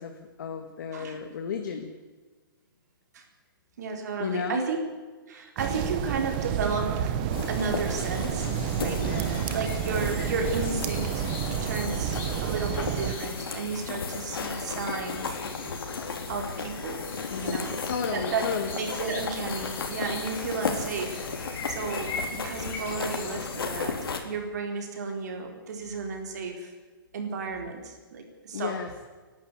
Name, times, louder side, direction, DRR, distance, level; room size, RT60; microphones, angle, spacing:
voice 1, 0.0-1.9 4.2-4.6 9.0-9.4 17.3-18.7 28.5-28.9, left 6 dB, 55° left, 5 dB, 1.9 m, -33 dB
voice 2, 3.8-4.8 5.3-7.2 7.5-8.5 8.8-11.3 11.6-15.3 16.3-17.1 17.4-17.7 18.1-24.0 24.2-26.7 27.1-28.8, right 4 dB, 50° right, 3 dB, 4.2 m, -33 dB
sound 1, 5.6-13.1, right 10 dB, 25° right, 1.1 m, -30 dB
sound 2, 7.3-24.2, left 5 dB, 85° left, 3.8 m, -35 dB
sound 3, 8.4-23.6, left 3 dB, 15° left, 3.0 m, -42 dB
29.5 x 12.0 x 8.3 m, 1.3 s
hypercardioid pair, 175°, 12 cm